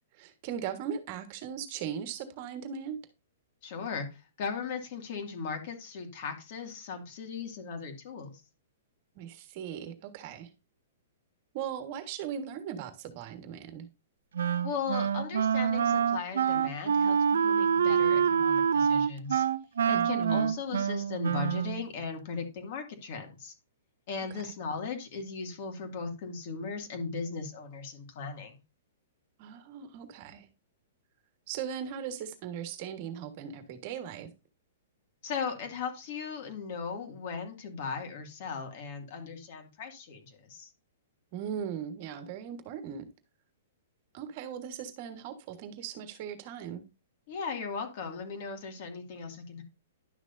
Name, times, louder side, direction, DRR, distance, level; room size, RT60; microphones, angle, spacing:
voice 1, 0.1-3.0 9.1-10.5 11.5-13.9 19.9-20.5 24.3-24.4 29.4-30.5 31.5-34.3 41.3-43.1 44.1-46.8, right 8 dB, 35° right, 9 dB, 1.5 m, -38 dB
voice 2, 3.6-8.4 14.6-19.4 19.9-23.5 24.1-28.6 35.2-40.7 47.3-49.6, left 5 dB, 45° left, 4 dB, 2.2 m, -37 dB
Wind instrument woodwind instrument, 14.4-21.8, right 7 dB, 85° right, 0.5 m, -26 dB
11.5 x 6.2 x 2.7 m, 0.27 s
hypercardioid pair, 165°, 0 cm